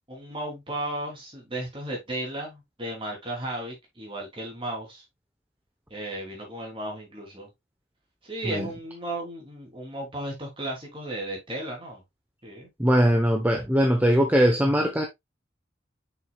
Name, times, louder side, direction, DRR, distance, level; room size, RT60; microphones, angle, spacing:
voice 1, 0.1-5.0 5.9-7.5 8.2-12.0 12.4-12.7, right 1 dB, 25° right, 3.1 m, -35 dB
voice 2, 12.8-15.0, equal, 10° right, 0.9 m, -21 dB
6.6 x 6.2 x 2.3 m
head